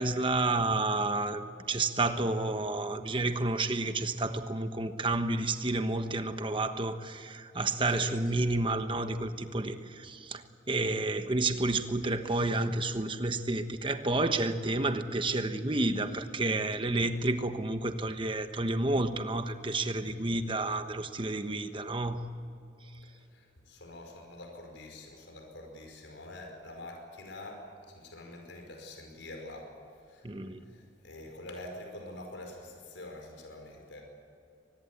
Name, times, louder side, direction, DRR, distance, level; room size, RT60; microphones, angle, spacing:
voice 1, 0.0-22.3 30.2-30.6, right 2 dB, 25° right, 9 dB, 1.2 m, -30 dB
voice 2, 23.3-29.7 30.1-30.3 30.7-34.0, left 1 dB, 85° left, 3 dB, 5.1 m, -46 dB
24.5 x 20.0 x 8.5 m, 2.5 s
head